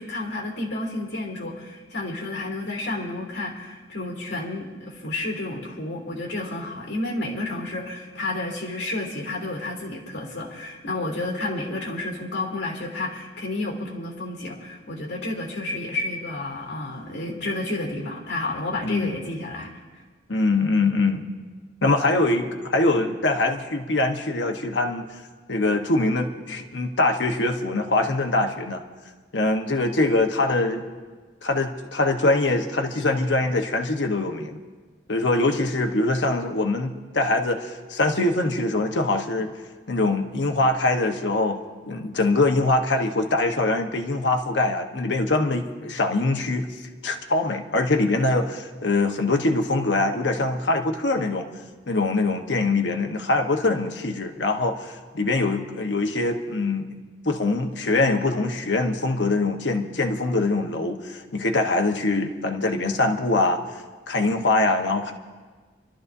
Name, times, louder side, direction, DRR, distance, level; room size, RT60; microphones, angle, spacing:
voice 1, 0.0-19.7, left 2 dB, 70° left, -1 dB, 3.4 m, -31 dB
voice 2, 18.8-19.1 20.3-21.3 21.8-25.0 25.5-28.8 29.3-30.9 31.4-34.6 35.1-39.5 39.9-41.6 41.9-46.7 47.0-51.5 51.9-56.9 57.2-63.6 64.1-65.1, left 2 dB, 90° left, 4 dB, 1.2 m, -23 dB
29.0 x 12.5 x 2.7 m, 1.4 s
head